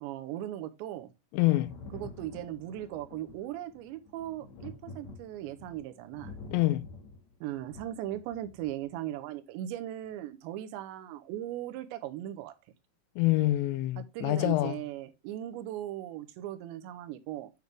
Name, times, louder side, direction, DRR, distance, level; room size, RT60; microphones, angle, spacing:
voice 1, 0.0-1.1 1.9-6.4 7.4-12.5 14.0-17.5, right 13 dB, 85° right, 3.0 m, -38 dB
voice 2, 1.3-1.7 6.5-6.9 13.2-14.8, left 17 dB, 85° left, 2.9 m, -26 dB
Thunder, 1.6-8.9 10.1-10.2, left 3 dB, 55° left, 2.1 m, -48 dB
8.7 x 6.4 x 3.3 m
omnidirectional pair, 5.1 m